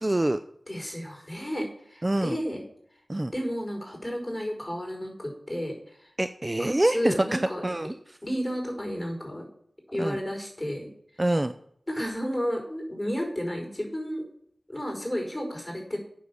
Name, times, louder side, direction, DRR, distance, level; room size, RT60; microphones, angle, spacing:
voice 1, 0.0-0.4 2.0-2.4 3.1-3.3 6.2-7.9 10.0-10.2 11.2-11.5, right 1 dB, 30° right, 10 dB, 0.5 m, -25 dB
voice 2, 0.7-2.6 3.3-6.1 6.6-7.6 8.2-9.5 9.9-10.9 11.9-14.3 14.7-16.0, equal, 15° left, 1 dB, 5.0 m, -32 dB
9.1 x 6.5 x 7.1 m, 0.64 s
cardioid pair, 45°, 0 cm